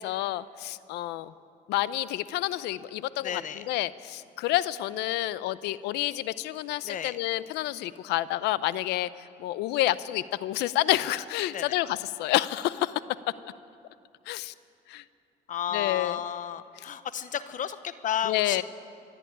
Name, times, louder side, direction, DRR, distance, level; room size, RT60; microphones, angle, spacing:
voice 1, 0.0-1.3 1.7-9.1 9.4-13.0 13.4-13.5 14.3-14.5 14.9-15.0 15.7-16.2 16.8-16.9 18.2-18.6, left 15 dB, 85° left, 17 dB, 0.7 m, -29 dB
voice 2, 3.2-3.6 6.8-7.2 11.5-11.8 15.5-18.6, left 9 dB, 50° left, 13 dB, 1.0 m, -32 dB
26.0 x 11.0 x 10.0 m, 2.5 s
cardioid pair, 110°, 17 cm